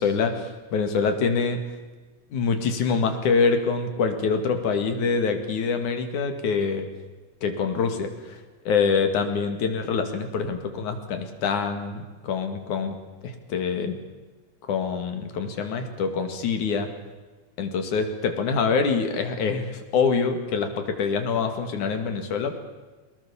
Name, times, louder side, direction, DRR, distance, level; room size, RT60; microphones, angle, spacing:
voice 1, 0.0-1.6 2.3-6.9 7.4-8.4 8.7-13.0 13.2-14.0 14.7-16.9 17.6-22.6, left 5 dB, 85° left, 6 dB, 3.7 m, -25 dB
23.5 x 20.5 x 7.1 m, 1.3 s
omnidirectional pair, 3.4 m